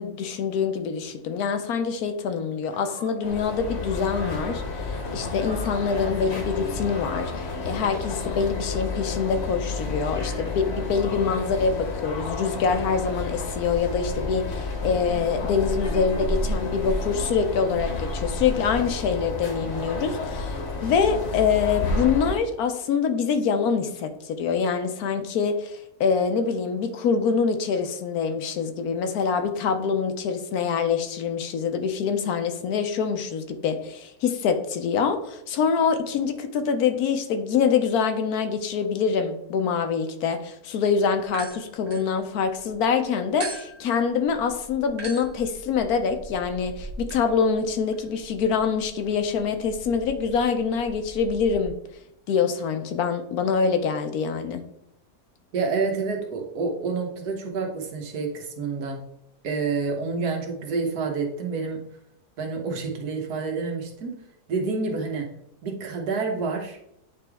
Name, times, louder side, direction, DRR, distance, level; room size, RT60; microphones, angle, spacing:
voice 1, 0.0-51.8 52.3-54.6, left 6 dB, 75° left, 8 dB, 1.2 m, -25 dB
Animal, 2.7-3.4 4.1-4.7 5.3-6.1 6.8-7.5, right 1 dB, 15° right, 0.3 m, -42 dB
sound 1, 3.2-22.4, left 3 dB, 50° left, 1.2 m, -30 dB
sound 2, 41.3-42.7 43.4-51.7, right 2 dB, 40° right, 1.0 m, -41 dB
voice 2, 55.5-59.0 59.4-61.8 62.4-64.2 64.5-65.3 65.6-66.8, right 4 dB, 85° right, 2 dB, 1.6 m, -28 dB
8.9 x 3.5 x 3.4 m, 0.80 s
omnidirectional pair, 1.6 m